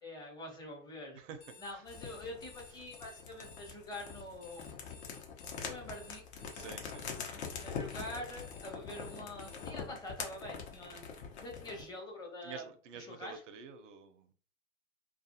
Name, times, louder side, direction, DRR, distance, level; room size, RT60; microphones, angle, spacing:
voice 1, 0.0-1.2 1.6-4.8 5.6-6.4 7.6-11.1 11.4-12.6 12.9-13.4, left 1 dB, 10° left, -1 dB, 0.8 m, -45 dB
voice 2, 1.1-1.5 6.5-7.1 12.4-14.3, right 6 dB, 65° right, 8 dB, 0.6 m, -48 dB
Alarm, 1.3-9.7, left 5 dB, 25° left, 0.4 m, -56 dB
sound 1, 1.9-11.9, left 6 dB, 55° left, 0.9 m, -44 dB
2.4 x 2.3 x 2.7 m, 0.43 s
hypercardioid pair, 120°, 39 cm